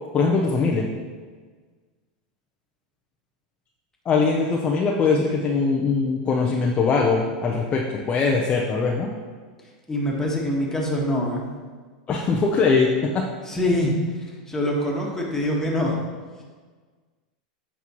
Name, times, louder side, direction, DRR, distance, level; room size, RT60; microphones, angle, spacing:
voice 1, 0.1-0.9 4.0-9.1 12.1-13.3, left 4 dB, 30° left, -1 dB, 0.7 m, -21 dB
voice 2, 9.9-11.5 13.4-16.0, left 1 dB, 10° left, -3 dB, 1.6 m, -24 dB
8.1 x 5.5 x 3.1 m, 1.5 s
hypercardioid pair, 110°, 5 cm